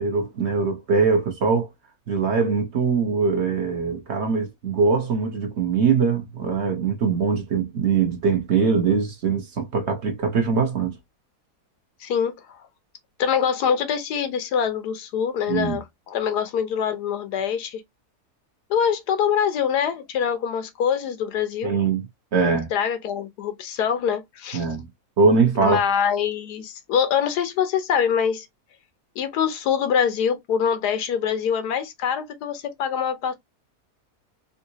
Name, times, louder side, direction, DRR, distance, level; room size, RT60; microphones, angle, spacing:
voice 1, 0.0-1.7 2.1-11.0 15.5-15.8 21.6-22.1 22.3-22.7 24.5-24.9 25.2-25.8, right 5 dB, 50° right, 1.0 m, -22 dB
voice 2, 12.0-12.4 13.2-17.8 18.7-21.7 22.7-24.6 25.6-28.5 29.2-33.3, left 7 dB, 85° left, 1.3 m, -24 dB
3.8 x 2.4 x 2.7 m
omnidirectional pair, 1.7 m